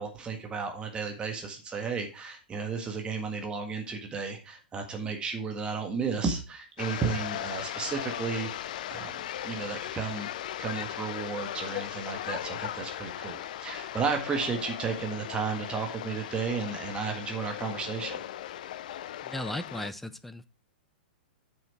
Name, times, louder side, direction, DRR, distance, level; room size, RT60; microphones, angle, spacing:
voice 1, 0.0-10.3 10.6-18.2, right 5 dB, 20° right, 4 dB, 1.6 m, -33 dB
sound 1, 6.8-19.9, left 12 dB, 55° left, 0.5 m, -38 dB
voice 2, 19.2-20.5, left 1 dB, 5° left, 13 dB, 0.6 m, -36 dB
9.1 x 6.5 x 4.3 m, 0.30 s
figure-of-eight pair, 105°, 5 cm